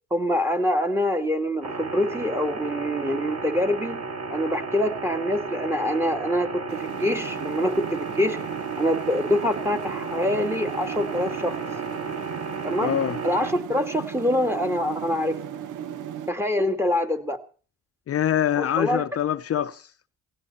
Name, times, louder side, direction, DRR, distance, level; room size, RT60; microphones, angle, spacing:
voice 1, 0.1-4.0 4.3-8.4 8.8-11.6 12.6-13.0 13.2-15.3 16.3-17.4 18.6-19.0, left 1 dB, 10° right, 2.3 m, -25 dB
sound 1, 1.6-13.5, right 4 dB, 60° right, 2.8 m, -34 dB
sound 2, 6.7-16.3, right 9 dB, 80° right, 1.3 m, -36 dB
voice 2, 12.8-13.2 18.1-19.9, left 10 dB, 50° left, 0.7 m, -24 dB
17.5 x 16.5 x 4.3 m
cardioid pair, 90°, 30 cm